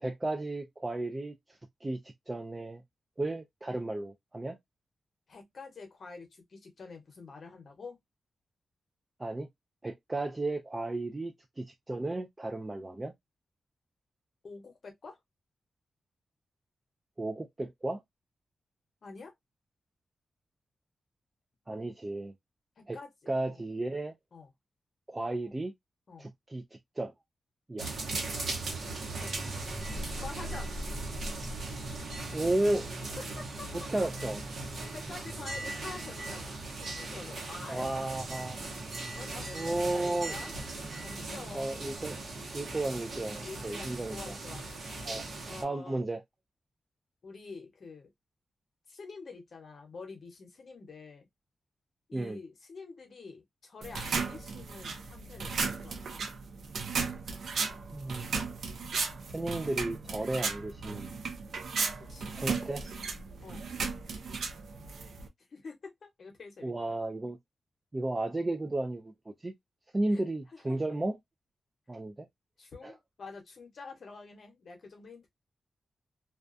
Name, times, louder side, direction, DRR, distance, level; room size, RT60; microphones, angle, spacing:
voice 1, 0.0-1.4 1.8-2.0 2.3-2.8 3.2-4.6 9.2-9.5 9.8-13.1 17.2-18.0 21.7-22.3 22.9-23.0 23.3-24.1 25.1-25.7 26.2-26.6 27.0-27.1 27.7-27.9 32.3-32.9 33.7-34.4 37.7-38.6 39.0-39.2 39.5-40.3 41.5-42.2 42.5-44.4 45.0-45.2 45.6-46.2 52.1-52.4 57.9-58.4 59.3-61.2 62.3-63.0 66.6-67.4 67.9-69.1 69.4-69.5 69.9-71.2 71.9-72.3 72.8-72.9, right 2 dB, 20° right, 0.3 m, -33 dB
voice 2, 5.3-8.0 14.4-15.2 19.0-19.3 21.7-21.8 22.8-23.6 24.3-24.5 26.1-26.3 29.1-29.3 29.9-30.8 33.1-33.7 34.9-37.9 39.1-40.5 41.0-41.8 43.4-44.6 44.9-45.2 45.5-46.0 47.2-48.1 48.9-51.3 52.1-56.3 62.1-62.3 63.4-63.6 65.5-66.9 70.1-70.3 70.5-70.8 72.6-75.3, left 4 dB, 60° left, 0.9 m, -47 dB
sound 1, 27.8-45.6, right 2 dB, 65° right, 0.8 m, -38 dB
sound 2, 53.8-65.3, right 5 dB, 80° right, 0.5 m, -35 dB
2.3 x 2.2 x 2.4 m
wide cardioid pair, 115°, 0 cm